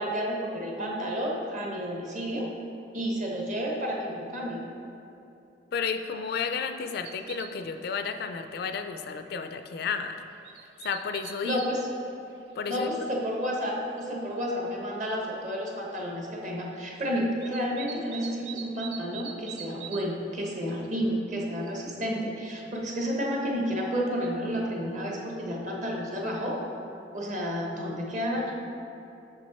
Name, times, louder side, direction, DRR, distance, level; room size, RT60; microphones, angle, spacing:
voice 1, 0.0-2.5 2.9-4.6 11.4-11.9 12.5-26.6 27.1-28.5, equal, 45° right, -1 dB, 1.1 m, -31 dB
voice 2, 5.7-10.2 10.8-11.6 12.6-13.1, left 6 dB, 60° left, 8 dB, 0.3 m, -32 dB
sound 1, 7.0-7.7 8.1-8.2 8.5-8.7 9.2-9.3 10.2-11.7 12.4-12.5 13.7-13.8 14.4-14.5 14.7-15.1 17.4-20.1 20.4-21.0, right 8 dB, 65° right, 0.4 m, -42 dB
6.1 x 6.1 x 4.3 m, 2.8 s
head